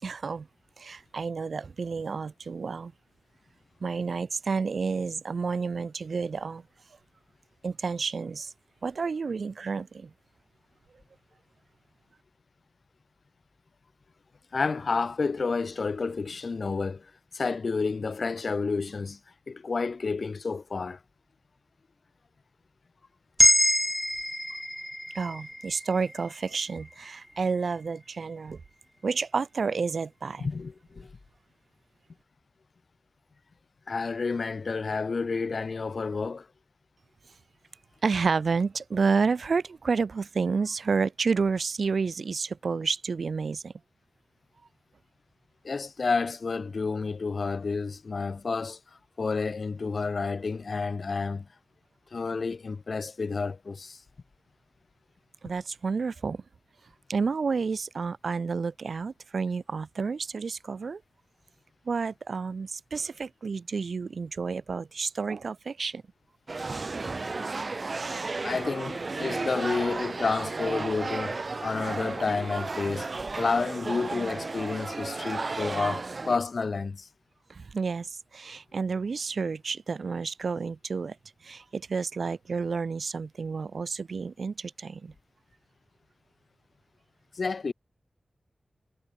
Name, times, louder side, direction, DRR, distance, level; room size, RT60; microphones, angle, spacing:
voice 1, 0.0-0.5 0.8-2.9 3.8-6.6 7.6-8.5 8.8-10.1 25.1-28.6 29.0-30.5 38.0-43.7 55.4-56.4 57.1-61.0 61.8-66.0 77.5-81.2 81.4-85.1, right 5 dB, 70° right, 5.0 m, -30 dB
voice 2, 14.5-19.2 19.5-21.0 30.4-31.1 33.9-36.5 45.6-48.8 49.2-51.5 52.1-54.0 68.4-73.1 73.4-77.1 87.3-87.7, left 4 dB, 60° left, 0.8 m, -30 dB
sound 1, 23.4-27.6, equal, ahead, 0.9 m, -26 dB
sound 2, 66.5-76.4, right 3 dB, 45° right, 1.4 m, -33 dB
wide cardioid pair, 115°, 0 cm